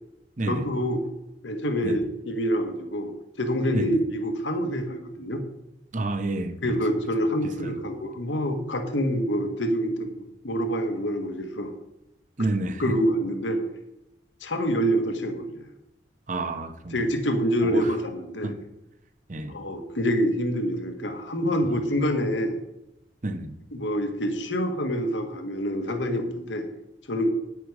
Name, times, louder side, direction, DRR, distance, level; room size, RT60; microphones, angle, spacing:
voice 1, 0.5-1.0 1.4-5.4 6.6-11.7 12.8-13.6 14.4-15.7 16.9-18.5 19.5-22.6 23.7-26.7 27.1-27.3, equal, 90° left, 1.5 m, -26 dB
voice 2, 5.9-6.6 7.6-7.8 12.4-12.9 16.3-17.0 17.6-17.9 18.4-18.5 19.3-19.6 23.2-23.6, right 2 dB, 45° right, 0.9 m, -29 dB
9.9 x 9.6 x 4.9 m
head